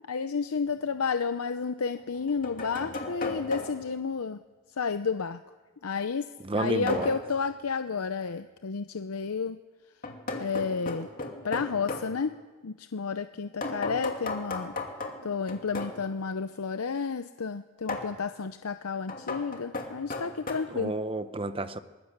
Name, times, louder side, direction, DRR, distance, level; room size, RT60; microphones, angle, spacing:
voice 1, 0.1-4.4 4.8-5.4 5.8-6.3 6.5-9.6 10.3-11.1 11.4-12.3 12.6-14.7 15.2-20.9, left 5 dB, 90° left, 0.7 m, -31 dB
sound 1, 0.6-0.7 2.0-4.0 6.9-7.3 10.0-12.1 13.6-16.0 17.9-18.2 19.1-20.5, left 2 dB, 40° left, 2.6 m, -36 dB
voice 2, 6.4-7.1 20.7-21.8, right 2 dB, 25° right, 0.8 m, -31 dB
23.0 x 21.0 x 6.7 m
head